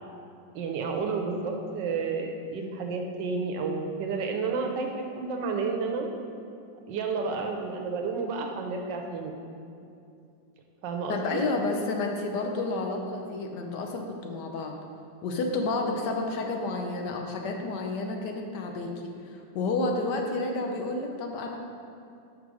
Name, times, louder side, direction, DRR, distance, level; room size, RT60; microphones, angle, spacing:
voice 1, 0.5-6.1 6.9-9.3 10.8-11.4 15.8-16.0 20.2-20.4, right 4 dB, 75° right, 3 dB, 1.3 m, -31 dB
voice 2, 11.1-14.8 15.2-21.6, left 3 dB, 70° left, 3 dB, 1.2 m, -30 dB
5.4 x 5.0 x 6.2 m, 2.6 s
omnidirectional pair, 2.0 m